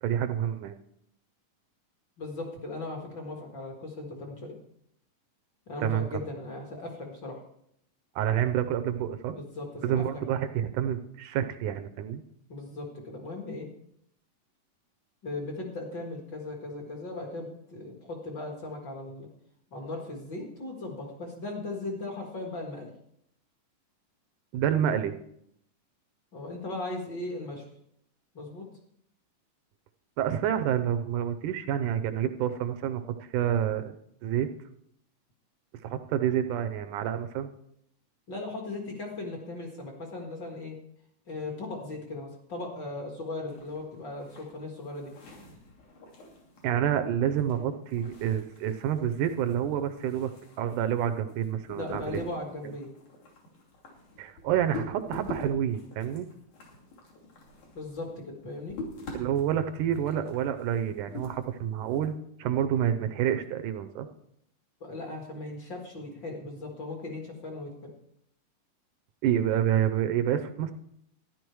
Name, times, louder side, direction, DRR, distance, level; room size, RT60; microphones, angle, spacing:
voice 1, 0.0-0.8 5.8-6.2 8.2-9.4 9.8-12.2 24.5-25.2 30.2-33.0 33.3-33.9 34.2-34.5 35.8-37.5 46.6-50.3 50.6-52.2 54.2-56.3 59.1-62.1 62.4-64.1 69.2-70.7, right 10 dB, 75° right, 9 dB, 2.1 m, -28 dB
voice 2, 2.2-4.6 5.7-7.4 9.3-10.0 12.5-13.7 15.2-19.3 19.7-22.9 26.3-27.6 28.3-28.6 38.3-40.8 41.3-45.1 51.7-52.9 57.7-58.8 64.8-67.9, left 2 dB, 40° left, 1 dB, 2.1 m, -38 dB
sound 1, 43.5-62.1, left 2 dB, 60° left, 3.9 m, -46 dB
13.5 x 10.5 x 4.6 m, 0.72 s
omnidirectional pair, 3.8 m